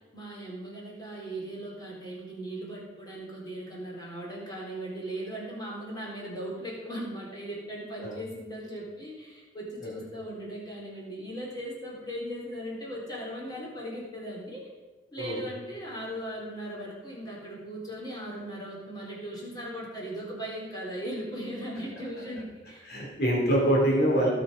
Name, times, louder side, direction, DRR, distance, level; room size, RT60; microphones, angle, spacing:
voice 1, 0.1-14.7 15.1-22.9, right 1 dB, 20° left, -4 dB, 3.7 m, -38 dB
voice 2, 22.9-24.3, right 1 dB, 55° left, -3 dB, 3.1 m, -24 dB
17.5 x 6.9 x 5.1 m, 1.3 s
head